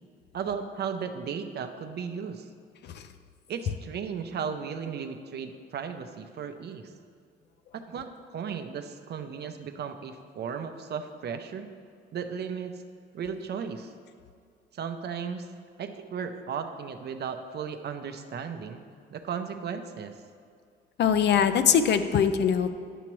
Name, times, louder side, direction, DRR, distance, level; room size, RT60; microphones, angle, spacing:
voice 1, 0.3-2.5 3.5-6.9 7.7-11.7 12.1-12.8 13.1-13.9 14.7-15.5 15.8-18.8 19.1-20.1, right 6 dB, 55° right, 7 dB, 0.6 m, -35 dB
voice 2, 21.0-22.7, left 8 dB, 60° left, 10 dB, 0.5 m, -22 dB
10.0 x 5.8 x 3.1 m, 2.3 s
cardioid pair, 90°, 20 cm